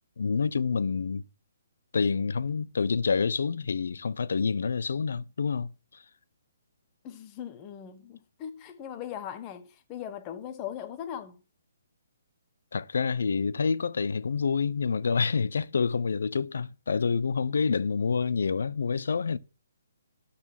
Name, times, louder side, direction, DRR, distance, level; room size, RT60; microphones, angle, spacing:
voice 1, 0.2-1.2 1.9-6.0 12.7-19.4, left 5 dB, 70° left, 0.7 m, -27 dB
voice 2, 7.0-11.4, left 9 dB, 15° left, 1.0 m, -39 dB
12.5 x 4.3 x 7.4 m
hypercardioid pair, 175°, 0 cm